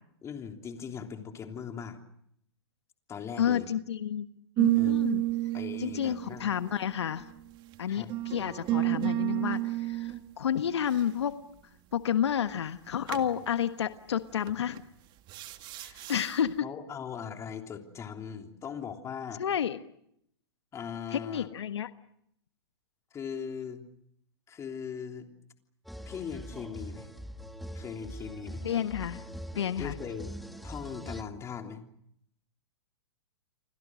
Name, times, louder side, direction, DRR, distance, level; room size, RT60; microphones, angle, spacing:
voice 1, 0.2-2.0 3.1-3.7 4.8-5.0 5.5-6.5 7.9-8.1 15.7-16.1 16.6-19.4 20.7-21.5 23.1-23.8 24.5-25.3 26.0-27.1 27.7-28.6 29.8-30.3 30.6-31.8, left 7 dB, 20° left, 4 dB, 3.3 m, -39 dB
voice 2, 3.4-4.3 4.6-5.3 5.8-7.3 7.8-11.4 11.9-14.8 16.1-16.6 19.4-19.8 21.1-21.9 28.6-29.2 29.5-29.9, left 9 dB, 75° left, 10 dB, 1.4 m, -30 dB
sound 1, 4.6-7.4 8.1-10.2 13.1-13.3 14.5-14.8 15.3-16.3, right 17 dB, 30° right, 1.9 m, -30 dB
sound 2, 25.8-31.2, equal, ahead, 1.6 m, -42 dB
29.5 x 25.0 x 6.3 m, 0.72 s
hypercardioid pair, 125°, 14 cm